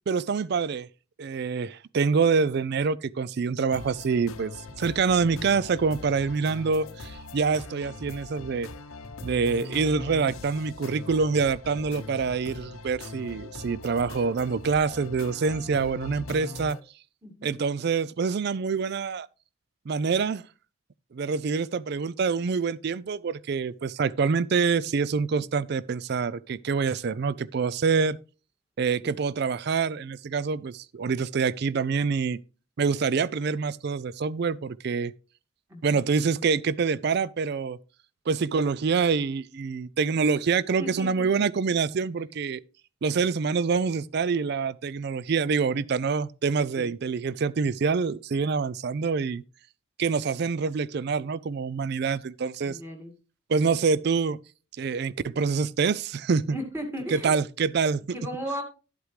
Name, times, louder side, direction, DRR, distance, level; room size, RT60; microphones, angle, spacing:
voice 1, 0.1-0.9 1.2-4.5 4.8-8.7 9.2-16.8 17.4-19.3 19.9-20.4 21.1-28.2 28.8-32.4 32.8-35.1 35.8-37.8 38.3-42.6 43.0-49.4 50.0-52.8 53.5-54.4 54.8-56.6 57.1-58.0, right 5 dB, 50° right, 0.4 m, -26 dB
sound 1, 3.7-16.8, left 3 dB, 85° left, 0.9 m, -41 dB
voice 2, 17.2-17.6 29.0-29.1 35.7-36.1 40.8-41.2 46.8-46.9 52.6-53.1 56.5-57.3 58.1-58.6, equal, 10° right, 2.0 m, -36 dB
11.0 x 8.2 x 3.2 m
head